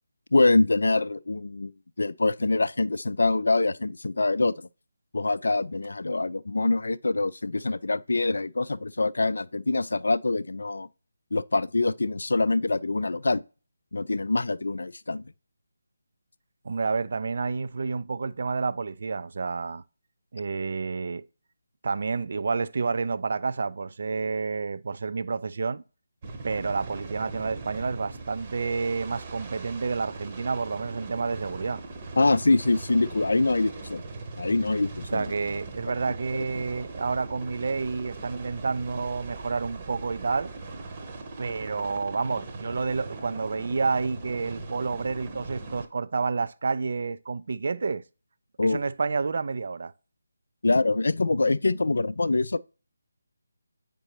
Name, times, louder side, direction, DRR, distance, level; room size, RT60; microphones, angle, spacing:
voice 1, 0.3-1.7 2.0-4.7 5.1-10.9 11.3-13.4 13.9-15.2 32.2-34.0 34.4-35.3 36.5-36.6 48.6-48.8 50.6-52.6, left 2 dB, 60° left, 0.4 m, -24 dB
voice 2, 16.6-19.8 20.3-21.3 21.8-25.8 26.4-31.8 35.1-40.5 41.4-48.0 48.6-49.9, right 4 dB, 45° right, 0.4 m, -29 dB
sound 1, 26.2-45.9, right 3 dB, 25° right, 0.9 m, -40 dB
8.7 x 5.2 x 3.0 m
figure-of-eight pair, 155°, 0 cm